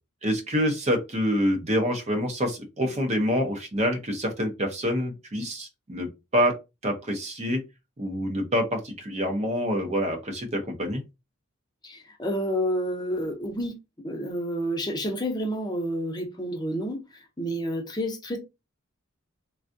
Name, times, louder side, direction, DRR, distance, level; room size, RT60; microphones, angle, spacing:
voice 1, 0.2-6.5 6.8-7.6 8.0-11.0, equal, 30° right, 0.7 m, -26 dB
voice 2, 11.8-13.8 14.0-17.0 17.4-18.4, equal, 20° left, 0.6 m, -29 dB
3.4 x 2.3 x 2.6 m
head